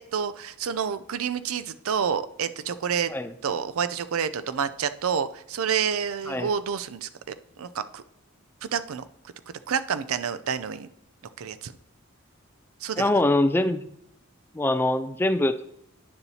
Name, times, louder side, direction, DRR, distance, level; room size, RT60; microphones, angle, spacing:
voice 1, 0.0-3.1 3.4-7.1 7.6-8.0 8.6-9.0 9.7-10.9 11.4-11.7 12.8-13.1, right 7 dB, 85° right, 13 dB, 0.5 m, -28 dB
voice 2, 13.0-13.9 14.5-15.6, left 1 dB, 10° left, 10 dB, 0.3 m, -23 dB
9.8 x 6.9 x 2.8 m, 0.75 s
head